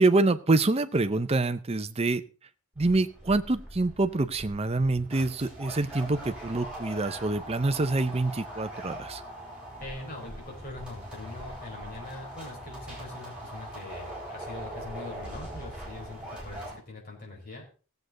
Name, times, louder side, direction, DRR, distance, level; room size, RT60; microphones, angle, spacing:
voice 1, 0.0-2.2 2.8-9.2, right 2 dB, 30° right, 11 dB, 0.7 m, -26 dB
sound 1, 2.8-16.7, right 1 dB, 5° right, 5.3 m, -41 dB
voice 2, 9.8-17.6, left 2 dB, 45° left, -2 dB, 5.3 m, -42 dB
17.5 x 8.0 x 3.9 m, 0.36 s
head